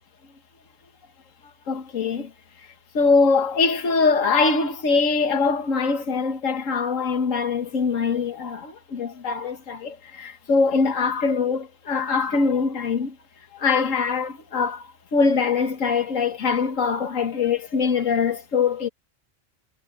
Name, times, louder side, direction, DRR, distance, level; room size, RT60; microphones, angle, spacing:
voice 1, 1.7-2.3 2.9-13.1 13.6-14.8 15.1-18.9, left 4 dB, 80° left, 1.8 m, -23 dB
omnidirectional pair, 1.3 m